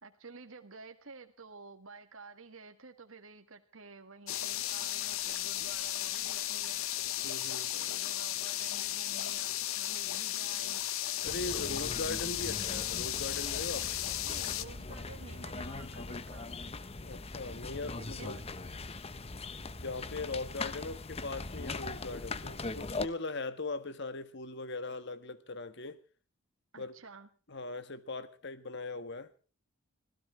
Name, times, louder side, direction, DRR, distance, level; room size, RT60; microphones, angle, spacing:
voice 1, 0.0-6.9 7.7-10.8 14.2-16.5 18.0-18.4 26.7-27.3, right 4 dB, 65° right, 1.7 m, -51 dB
sound 1, 4.3-14.6, left 13 dB, 70° left, 0.9 m, -35 dB
voice 2, 7.2-7.7 11.2-13.9 17.0-18.3 19.8-26.0 26.8-26.9 27.5-29.3, left 3 dB, 55° left, 1.5 m, -40 dB
sound 2, 11.2-23.1, left 3 dB, 30° left, 0.8 m, -41 dB
25.5 x 16.5 x 3.3 m
head